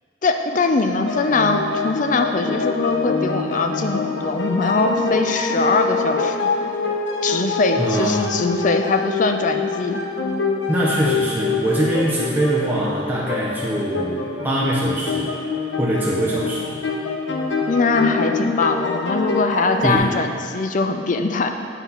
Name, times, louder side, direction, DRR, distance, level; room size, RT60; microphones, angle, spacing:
voice 1, 0.2-6.5 7.2-10.0 17.7-21.5, left 3 dB, 45° left, 5 dB, 0.5 m, -21 dB
sound 1, 1.1-20.0, left 4 dB, 75° left, 0.8 m, -25 dB
voice 2, 7.8-8.3 10.7-15.3 15.8-16.7 19.8-20.1, right 1 dB, 10° right, -6 dB, 0.7 m, -22 dB
8.2 x 3.9 x 5.6 m, 2.4 s
head